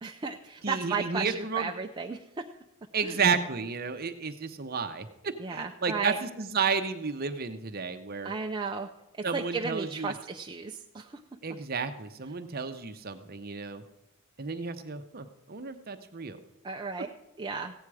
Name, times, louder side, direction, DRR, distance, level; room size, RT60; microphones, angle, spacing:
voice 1, 0.0-2.4 3.0-3.2 5.4-6.2 8.2-8.9 9.1-11.2 16.6-17.1 17.4-17.7, right 4 dB, 20° right, 2 dB, 0.5 m, -34 dB
voice 2, 0.6-1.7 2.9-8.3 9.2-10.1 11.4-13.8 14.4-16.4, right 5 dB, 45° right, 8 dB, 0.8 m, -32 dB
15.5 x 9.0 x 4.8 m, 0.90 s
head